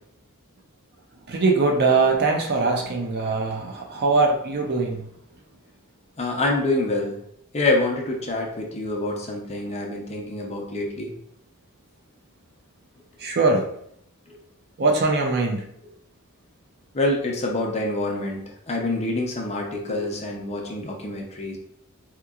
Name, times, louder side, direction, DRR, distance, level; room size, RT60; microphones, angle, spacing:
voice 1, 1.3-5.0 13.2-13.7 14.8-15.7, right 3 dB, 45° right, 2 dB, 0.5 m, -21 dB
voice 2, 6.2-7.2 7.5-11.1 14.3-14.4 16.9-21.6, left 2 dB, 30° left, 0 dB, 0.5 m, -26 dB
3.5 x 2.9 x 2.3 m, 0.71 s
head